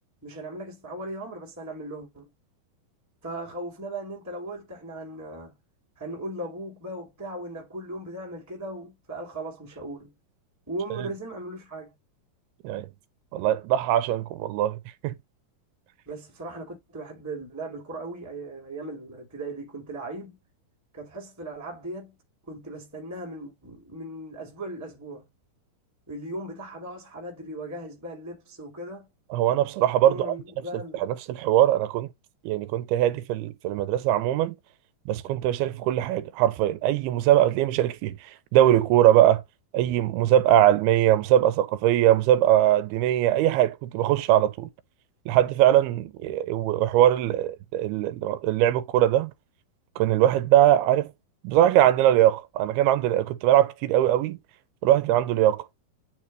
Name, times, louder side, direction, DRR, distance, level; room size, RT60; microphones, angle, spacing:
voice 1, 0.2-2.3 3.2-5.5 6.0-10.1 10.7-11.9 16.0-20.4 20.9-22.1 22.5-25.3 26.1-29.1 30.0-31.0, right 1 dB, 5° right, 1.3 m, -37 dB
voice 2, 13.3-14.8 15.0-15.2 29.3-30.2 30.9-32.1 32.4-34.5 35.1-39.4 39.7-44.7 45.3-49.3 50.0-51.1 51.4-54.4 54.8-55.7, right 12 dB, 80° right, 2.5 m, -21 dB
9.2 x 3.6 x 3.0 m
omnidirectional pair, 4.6 m